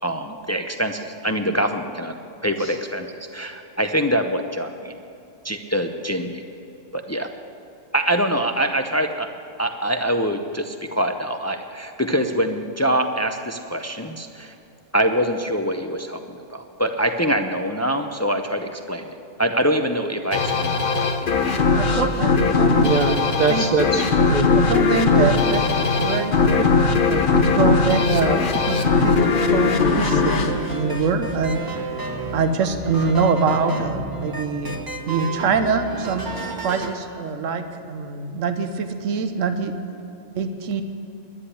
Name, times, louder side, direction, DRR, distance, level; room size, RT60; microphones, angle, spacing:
voice 1, 0.0-2.2 2.4-4.9 5.4-6.4 6.9-7.3 7.9-9.3 9.6-14.5 14.9-21.6, right 1 dB, 25° left, 6 dB, 0.3 m, -24 dB
sound 1, 20.3-31.5, left 4 dB, 45° left, 1.0 m, -19 dB
voice 2, 21.7-22.9 23.5-23.7 24.5-25.6 26.0-26.7 27.0-31.9 32.3-34.7 35.1-36.3 36.6-39.8 40.3-40.8, right 5 dB, 80° right, 8 dB, 1.2 m, -24 dB
voice 3, 22.8-24.5 25.2-25.3, right 3 dB, 40° right, 3 dB, 0.7 m, -22 dB
sound 2, 30.0-37.0, right 3 dB, 20° right, 1.1 m, -31 dB
10.5 x 9.9 x 9.9 m, 2.7 s
omnidirectional pair, 1.3 m